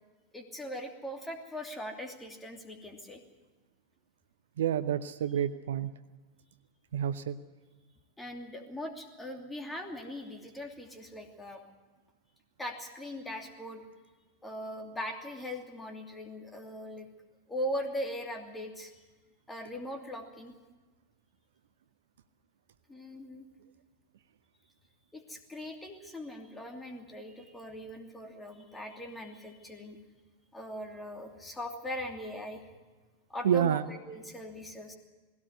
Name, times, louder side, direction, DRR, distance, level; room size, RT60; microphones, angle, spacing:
voice 1, 0.3-3.2 8.2-11.6 12.6-13.8 14.4-17.1 17.5-18.9 19.5-20.5 22.9-23.4 25.1-30.0 30.5-32.7 33.3-35.0, equal, 10° left, 3 dB, 2.8 m, -40 dB
voice 2, 4.6-5.9 6.9-7.4 33.4-33.8, right 9 dB, 60° right, 13 dB, 0.7 m, -28 dB
20.0 x 17.0 x 8.0 m, 1.3 s
figure-of-eight pair, 90°, 0 cm